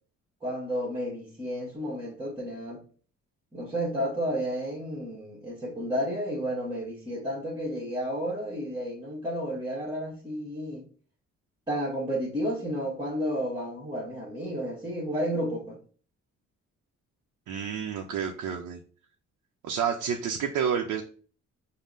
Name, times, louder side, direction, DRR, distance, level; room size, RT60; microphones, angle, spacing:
voice 1, 0.4-2.8 3.5-10.8 11.7-15.8, equal, 15° right, 1.3 m, -32 dB
voice 2, 17.5-18.8 19.6-21.0, right 7 dB, 80° right, 0.6 m, -29 dB
5.3 x 2.1 x 3.9 m
cardioid pair, 90°, 30 cm